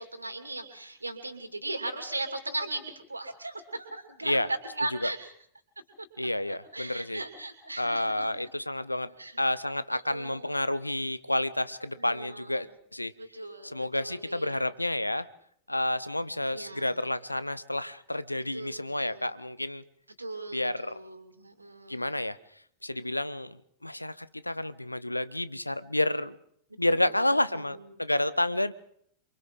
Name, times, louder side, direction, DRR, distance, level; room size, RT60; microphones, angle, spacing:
voice 1, 0.0-5.3 6.7-8.3 9.1-9.4 9.9-10.6 12.0-12.7 13.2-14.7 16.5-17.0 18.5-19.3 20.2-22.1 23.0-23.1 26.9-27.9, right 2 dB, 80° right, 7 dB, 2.7 m, -38 dB
voice 2, 6.2-7.2 7.8-9.1 9.4-13.1 13.6-15.3 15.7-19.8 20.5-21.0 21.9-22.4 22.8-26.3 26.8-28.7, left 1 dB, 85° left, 16 dB, 0.7 m, -30 dB
28.5 x 23.5 x 3.9 m, 0.66 s
figure-of-eight pair, 90°, 0 cm